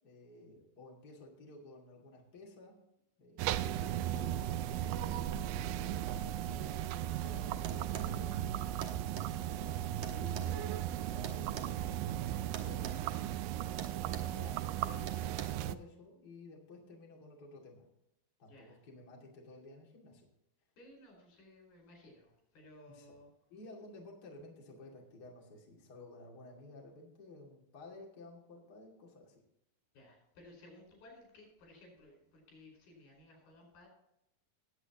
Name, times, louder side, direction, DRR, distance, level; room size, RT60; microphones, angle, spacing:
voice 1, 0.0-2.8 3.2-3.7 4.1-8.4 9.3-13.2 13.9-17.9 18.4-20.3 22.9-23.1 23.5-29.4, left 2 dB, 30° left, -2 dB, 2.6 m, -54 dB
sound 1, 3.4-15.8, right 12 dB, 80° right, 2.0 m, -36 dB
sound 2, 7.6-8.1 8.8-9.3 10.0-11.7 12.5-13.0 13.2-13.4 13.8-14.3 15.1-15.4, right 7 dB, 65° right, 1.6 m, -44 dB
voice 2, 13.9-14.2 18.5-18.8 20.8-23.3 29.9-33.9, left 1 dB, 90° left, 0 dB, 6.7 m, -58 dB
18.5 x 8.3 x 3.0 m, 0.82 s
omnidirectional pair, 4.3 m